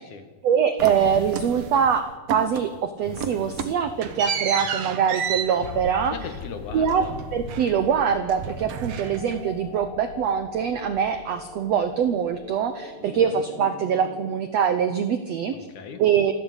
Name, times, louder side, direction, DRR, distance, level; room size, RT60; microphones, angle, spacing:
voice 1, 0.4-6.1 6.7-7.1 7.3-15.5 16.0-16.3, right 7 dB, 80° right, 9 dB, 1.5 m, -23 dB
sound 1, 0.8-2.0 2.3-2.8 3.0-8.0 8.3-9.6, right 7 dB, 60° right, 1.7 m, -32 dB
sound 2, 5.6-13.1, left 7 dB, 75° left, 2.7 m, -42 dB
voice 2, 6.1-7.2 13.0-13.4 15.5-16.0, left 6 dB, 60° left, 7 dB, 2.9 m, -38 dB
sound 3, 8.7-14.3, left 3 dB, 40° left, 0.7 m, -42 dB
28.0 x 12.0 x 8.2 m, 1.3 s
omnidirectional pair, 4.2 m